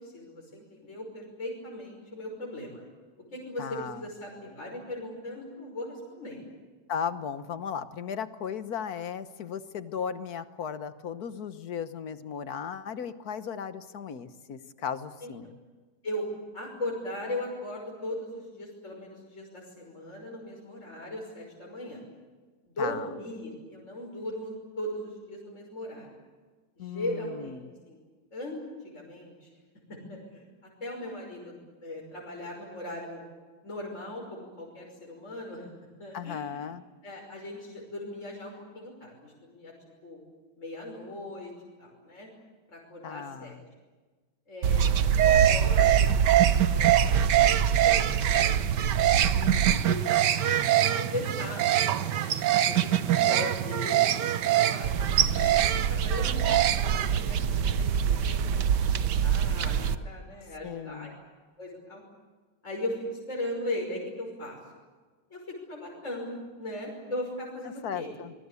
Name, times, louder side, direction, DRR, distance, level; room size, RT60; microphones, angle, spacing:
voice 1, 0.0-2.8 3.3-6.4 15.2-15.5 16.0-22.0 22.7-24.5 24.8-26.1 26.8-28.0 28.3-29.5 29.9-30.4 30.8-31.5 31.8-33.2 33.6-35.7 36.0-36.6 37.0-39.7 40.0-40.2 40.6-41.5 41.8-42.3 42.7-43.5 44.5-48.7 49.8-50.0 50.4-51.8 52.1-52.3 52.7-54.1 54.4-61.1 61.6-62.0 62.6-64.6 65.3-68.1, left 1 dB, 35° left, -1 dB, 6.1 m, -38 dB
voice 2, 3.6-4.1 6.9-15.6 22.8-23.1 26.8-27.7 36.1-36.8 43.0-43.6 49.3-49.9 60.6-61.2 67.8-68.3, left 7 dB, 50° left, 11 dB, 1.5 m, -36 dB
sound 1, 44.6-59.9, right 10 dB, 60° right, 1.4 m, -23 dB
26.0 x 22.0 x 8.3 m, 1.3 s
omnidirectional pair, 2.2 m